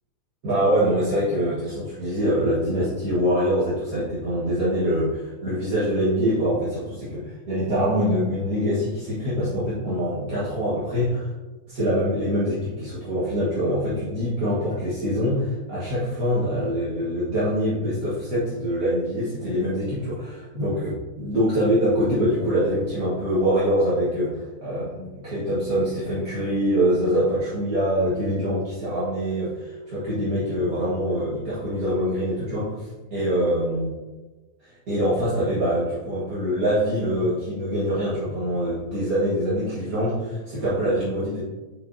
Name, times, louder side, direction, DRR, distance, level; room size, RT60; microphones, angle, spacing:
voice 1, 0.4-11.3 11.7-33.9 34.6-41.4, equal, 65° right, -11 dB, 2.1 m, -24 dB
6.7 x 5.4 x 2.8 m, 1.2 s
omnidirectional pair, 1.7 m